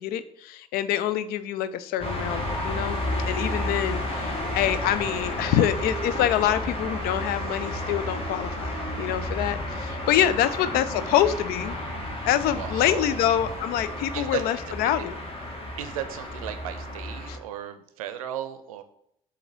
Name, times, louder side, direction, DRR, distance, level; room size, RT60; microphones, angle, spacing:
voice 1, 0.0-11.7 12.2-15.1 17.3-17.4, left 11 dB, 60° left, 13 dB, 0.5 m, -26 dB
sound 1, 2.0-17.4, left 1 dB, 30° left, 1.7 m, -32 dB
voice 2, 12.5-13.2 14.1-14.4 15.8-18.8, right 10 dB, 75° right, 9 dB, 0.5 m, -35 dB
7.7 x 2.8 x 6.0 m, 0.74 s
figure-of-eight pair, 40°, 18 cm